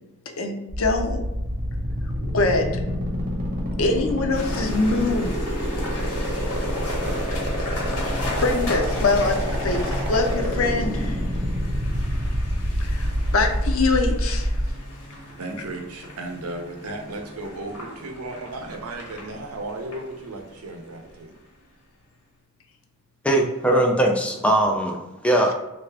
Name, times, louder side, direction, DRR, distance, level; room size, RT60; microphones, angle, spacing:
voice 1, 0.4-1.2 2.2-2.7 3.8-5.3 8.4-11.2 12.8-13.1 13.3-14.5, left 3 dB, 65° left, 4 dB, 0.5 m, -23 dB
sound 1, 0.7-14.7, equal, 40° right, 0.8 m, -27 dB
sound 2, 4.3-21.5, left 1 dB, 85° left, 1.2 m, -37 dB
voice 2, 15.4-21.3, right 2 dB, 75° right, 3 dB, 0.6 m, -35 dB
voice 3, 23.2-25.5, right 1 dB, 5° left, 1 dB, 0.4 m, -20 dB
3.3 x 2.5 x 3.3 m, 1.0 s
head